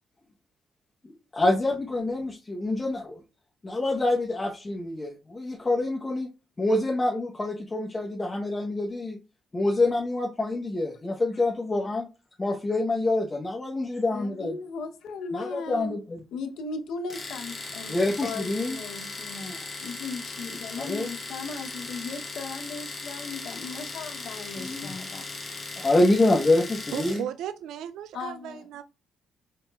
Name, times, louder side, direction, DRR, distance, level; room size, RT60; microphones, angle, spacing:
voice 1, 1.0-3.2 3.6-6.3 6.6-9.2 9.5-12.1 12.4-14.5 15.3-16.2 17.9-18.8 20.8-21.1 24.6-24.9 25.8-27.2, left 2 dB, 25° left, 0.8 m, -26 dB
voice 2, 14.1-16.0 16.3-25.3 28.1-28.6, left 4 dB, 75° left, 0.7 m, -37 dB
Domestic sounds home sounds, 17.1-27.3, left 3 dB, 40° left, 1.3 m, -38 dB
voice 3, 26.9-28.8, right 10 dB, 85° right, 0.3 m, -35 dB
4.1 x 3.9 x 2.2 m
cardioid pair, 90°, 0 cm